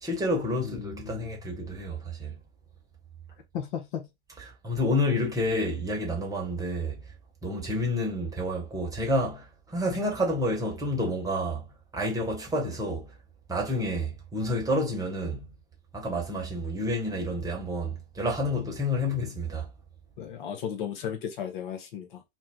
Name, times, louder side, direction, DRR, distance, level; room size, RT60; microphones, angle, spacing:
voice 1, 0.0-2.4 4.6-7.0 7.4-11.6 11.9-13.1 13.5-15.4 15.9-19.7, left 1 dB, 10° right, 1.1 m, -29 dB
voice 2, 0.6-1.3 3.5-4.1 20.2-22.2, left 8 dB, 50° left, 0.7 m, -35 dB
2.6 x 2.1 x 3.4 m
figure-of-eight pair, 90°, 31 cm